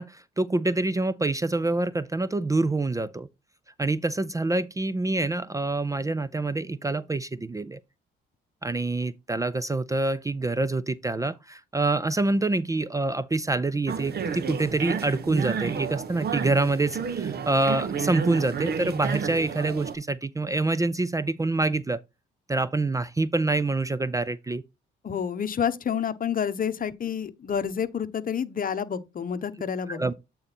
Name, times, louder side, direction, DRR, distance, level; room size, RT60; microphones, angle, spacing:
voice 1, 0.0-3.3 3.8-7.8 8.6-22.0 22.5-24.6 29.9-30.1, right 2 dB, 15° right, 0.5 m, -26 dB
sound 1, 13.9-19.9, right 6 dB, 55° right, 1.1 m, -31 dB
voice 2, 25.0-30.1, left 7 dB, 45° left, 1.0 m, -29 dB
8.6 x 3.9 x 4.2 m
cardioid pair, 90°, 20 cm